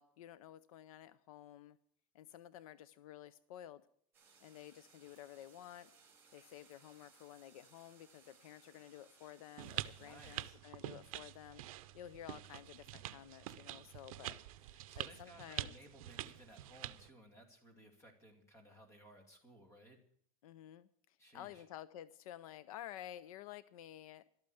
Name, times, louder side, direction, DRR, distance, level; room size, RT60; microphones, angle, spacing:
voice 1, 0.0-1.8 2.1-3.8 4.4-5.9 6.3-15.7 20.4-24.2, left 12 dB, 70° left, 17 dB, 0.6 m, -53 dB
sound 1, 4.1-10.5, right 5 dB, 10° right, 3.7 m, -66 dB
sound 2, 9.6-17.1, right 15 dB, 70° right, 0.7 m, -46 dB
voice 2, 10.0-10.6 14.9-20.0 21.2-21.6, right 1 dB, 15° left, 3 dB, 2.3 m, -59 dB
12.5 x 8.8 x 9.0 m, 0.63 s
supercardioid pair, 175°, 19 cm